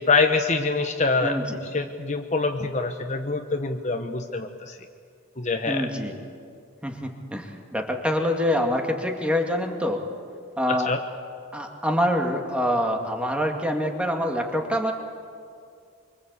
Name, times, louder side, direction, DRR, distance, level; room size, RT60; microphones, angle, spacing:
voice 1, 0.0-1.4 1.7-4.8 5.4-5.9 10.7-11.0, left 4 dB, 35° left, 5 dB, 1.1 m, -25 dB
voice 2, 1.2-1.6 5.7-6.2 6.8-10.0 10.6-10.9 11.5-14.9, equal, 5° right, 2 dB, 2.2 m, -25 dB
25.0 x 24.5 x 8.4 m, 2.3 s
head